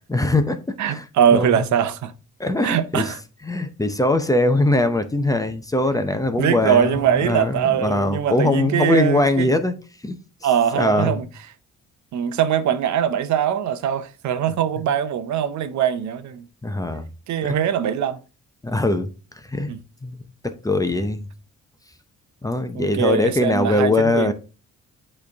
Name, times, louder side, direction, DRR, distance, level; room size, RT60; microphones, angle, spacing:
voice 1, 0.1-1.0 1.3-1.5 2.4-3.1 3.4-9.7 10.0-10.2 10.7-11.2 16.6-17.1 17.4-17.6 18.6-19.1 19.4-19.7 20.0-21.3 22.4-24.3, left 2 dB, 10° left, 0.7 m, -21 dB
voice 2, 0.8-2.1 2.6-3.2 6.4-9.5 10.4-11.3 12.1-16.5 17.3-18.2 19.7-19.8 22.7-24.3, right 9 dB, 70° right, 0.7 m, -22 dB
8.2 x 3.3 x 3.5 m
cardioid pair, 90°, 30 cm